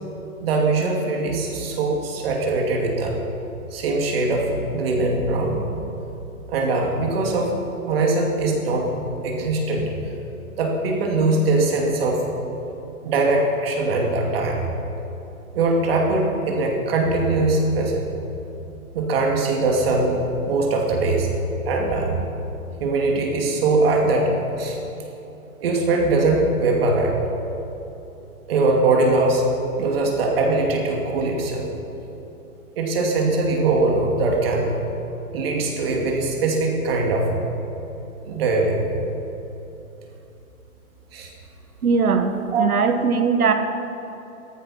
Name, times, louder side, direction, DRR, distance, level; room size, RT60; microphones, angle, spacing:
voice 1, 0.4-3.1 3.7-5.7 6.5-7.5 7.9-8.9 9.2-10.1 10.6-12.3 13.0-14.6 15.5-18.0 18.9-21.3 21.7-22.2 22.8-24.3 24.6-24.8 25.6-27.1 28.5-29.4 29.8-31.7 32.8-34.7 35.3-37.3 38.2-38.9 41.1-41.3 42.5-42.7, right 2 dB, 40° right, 0 dB, 2.5 m, -21 dB
voice 2, 41.8-43.5, right 5 dB, 80° right, 7 dB, 1.8 m, -20 dB
15.5 x 14.0 x 5.7 m, 3.0 s
hypercardioid pair, 155°, 43 cm